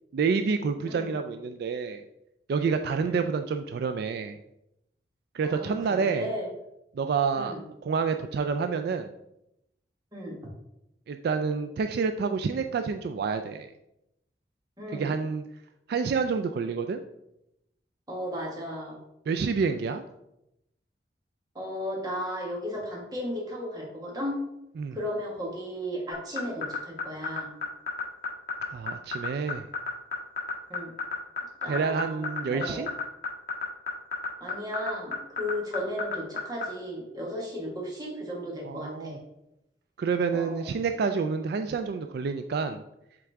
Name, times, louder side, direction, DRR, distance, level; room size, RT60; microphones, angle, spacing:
voice 1, 0.1-2.0 2.5-4.4 5.3-6.3 6.9-7.6 7.8-9.1 11.1-13.7 14.9-15.4 15.9-17.0 19.3-20.0 24.8-25.0 28.7-29.7 31.7-32.9 38.6-39.2 40.0-42.8, right 5 dB, 60° right, 7 dB, 0.3 m, -28 dB
voice 2, 5.4-5.7 6.0-6.5 7.3-7.6 10.1-10.4 14.8-15.1 18.1-19.0 21.5-24.4 24.9-27.5 30.7-30.9 31.6-32.2 32.5-32.8 34.4-39.2 40.3-40.7, equal, 20° right, -2 dB, 1.5 m, -35 dB
sound 1, 26.1-36.6, left 5 dB, 55° left, 1.6 m, -30 dB
7.7 x 3.7 x 3.4 m, 0.85 s
head